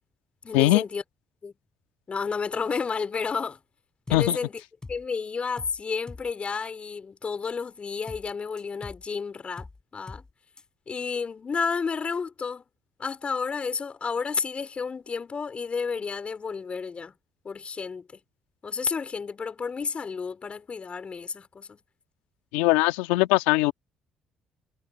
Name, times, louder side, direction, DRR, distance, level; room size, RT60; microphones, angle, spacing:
voice 1, 0.4-1.0 1.4-1.5 2.1-3.6 4.1-4.6 4.9-10.2 10.9-12.6 13.0-17.1 17.4-18.2 18.6-21.8, left 5 dB, 40° left, 4.5 m, -31 dB
sound 1, 4.1-4.3 4.6-5.1 5.6-5.8 6.1-6.3 8.1-8.3 8.6-9.1 9.6-9.8 10.1-10.3 10.6-10.7, left 3 dB, 25° left, 6.7 m, -43 dB
voice 2, 22.5-23.7, left 19 dB, 85° left, 1.9 m, -21 dB
supercardioid pair, 60°, 3 cm